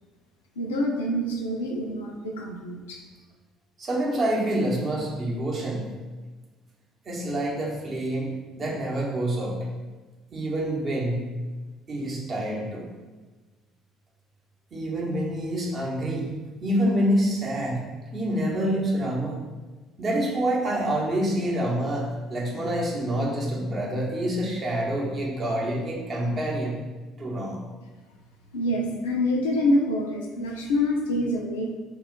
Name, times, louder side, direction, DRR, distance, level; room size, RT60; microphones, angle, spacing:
voice 1, 0.6-3.0 28.5-31.8, left 1 dB, 80° left, 0 dB, 0.3 m, -26 dB
voice 2, 3.8-5.9 7.1-8.3 8.6-9.6 10.3-11.3 11.9-12.9 14.7-17.9 18.1-19.4 20.0-26.8 27.2-27.6, right 1 dB, 40° right, -3 dB, 0.7 m, -27 dB
2.2 x 2.1 x 3.6 m, 1.3 s
hypercardioid pair, 55°, 0 cm